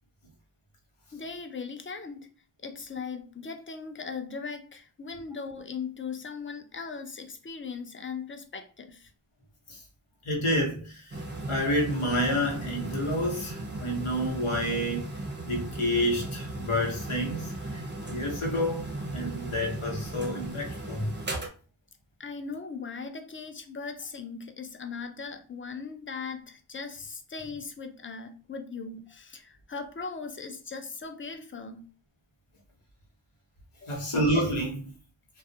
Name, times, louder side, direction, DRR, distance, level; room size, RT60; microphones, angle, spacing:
voice 1, 1.1-2.3 2.6-9.1 22.2-31.8 33.8-34.1, left 5 dB, 30° left, 0.3 m, -39 dB
voice 2, 10.2-11.2 11.5-15.1 15.4-17.8 18.1-21.1 33.9-34.9, equal, 85° left, 1.0 m, -29 dB
sound 1, 11.1-21.5, right 2 dB, 25° right, 0.5 m, -37 dB
2.3 x 2.0 x 2.6 m
wide cardioid pair, 55°, 49 cm